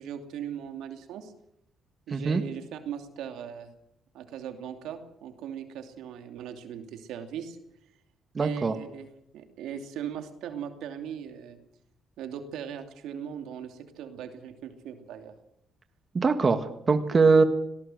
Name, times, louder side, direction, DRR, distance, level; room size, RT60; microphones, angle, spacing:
voice 1, 0.0-1.3 2.1-3.7 4.1-7.6 8.4-11.6 12.2-15.3, right 8 dB, 85° right, 6 dB, 2.8 m, -39 dB
voice 2, 2.1-2.4 8.4-8.7 16.1-17.4, right 4 dB, 35° right, 8 dB, 1.8 m, -22 dB
18.5 x 18.5 x 7.9 m, 0.76 s
cardioid pair, 90°, 0 cm